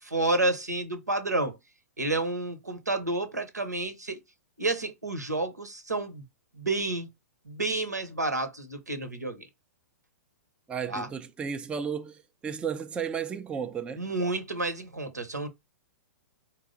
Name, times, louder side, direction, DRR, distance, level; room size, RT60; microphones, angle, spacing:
voice 1, 0.0-1.6 2.0-4.2 4.6-6.3 6.5-7.1 7.4-9.5 10.9-11.1 14.0-15.5, right 2 dB, 90° right, 0.9 m, -30 dB
voice 2, 10.7-14.1, right 7 dB, 10° right, 0.4 m, -34 dB
4.5 x 2.0 x 3.8 m
figure-of-eight pair, 110°, 9 cm